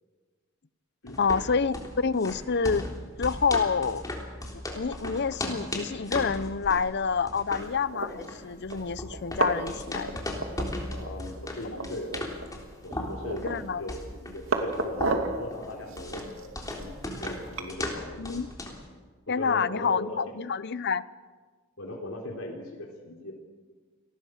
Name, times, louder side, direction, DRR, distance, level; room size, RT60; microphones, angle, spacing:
sound 1, 1.1-18.9, left 1 dB, 20° left, 3.5 m, -37 dB
voice 1, 1.2-2.9 3.2-4.0 4.5-10.2 13.4-13.8 18.2-18.5 19.3-21.0, left 5 dB, 55° left, 17 dB, 0.7 m, -28 dB
sound 2, 7.7-8.1 8.7-8.8 9.1-9.7 10.0-11.1 11.4-11.5 11.7-12.5 12.9-13.7 14.1-15.4 15.9-17.7, right 3 dB, 75° right, 2.8 m, -31 dB
voice 2, 10.9-12.2 12.8-18.1 19.3-20.2 21.8-23.3, left 1 dB, 85° left, -1 dB, 3.8 m, -39 dB
29.0 x 19.5 x 6.5 m, 1.4 s
head